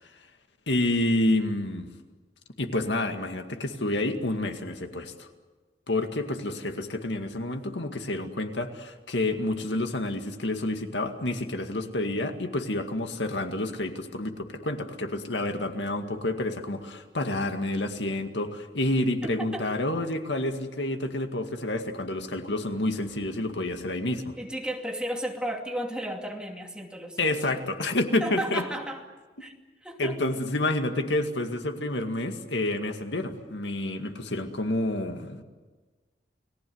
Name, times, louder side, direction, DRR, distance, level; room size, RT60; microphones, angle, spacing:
voice 1, 0.7-1.9 2.6-5.3 5.9-24.3 27.2-28.6 30.0-35.4, left 1 dB, 90° left, 6 dB, 2.1 m, -29 dB
voice 2, 19.2-19.7 24.4-27.6 28.2-29.0 29.4-29.5 29.8-30.2, right 1 dB, 5° right, 1 dB, 2.5 m, -34 dB
30.0 x 19.5 x 8.0 m, 1.3 s
head